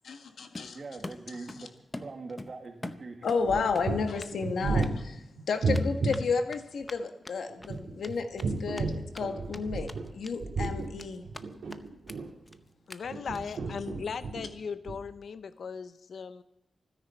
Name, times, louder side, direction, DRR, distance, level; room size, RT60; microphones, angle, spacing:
voice 1, 0.0-0.8 3.2-4.9 5.5-11.2, left 5 dB, 90° left, 6 dB, 1.6 m, -32 dB
Run, 0.5-1.6 1.9-3.4 3.7-4.4 4.7-4.9 5.7-9.2 9.5-9.6 9.9-10.3 10.6-11.4 11.7-11.8 12.1-12.2 12.5-12.6 12.9-13.0 13.3-13.6, left 2 dB, 20° left, 0.7 m, -43 dB
voice 2, 0.7-3.7 4.7-4.9 9.8-10.0, right 3 dB, 40° right, 5 dB, 1.8 m, -43 dB
sound 1, 3.4-6.2 7.5-10.1 10.4-12.5 13.0-14.5 14.9-15.0, right 3 dB, 70° right, 2.3 m, -32 dB
voice 3, 12.9-16.4, left 6 dB, 70° left, 12 dB, 0.6 m, -38 dB
26.5 x 10.0 x 4.4 m, 0.87 s
wide cardioid pair, 155°, 0 cm